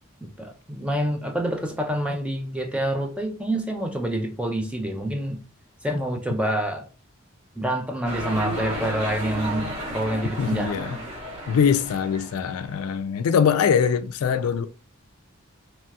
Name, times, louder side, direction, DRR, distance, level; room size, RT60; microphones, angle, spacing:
voice 1, 0.2-5.4 5.8-6.9 7.6-10.8, right 1 dB, 5° right, 0.3 m, -27 dB
sound 1, 8.0-12.7, equal, 30° right, 0.9 m, -33 dB
voice 2, 10.4-11.0 11.5-14.7, left 7 dB, 80° left, 0.3 m, -22 dB
3.0 x 2.3 x 2.7 m
head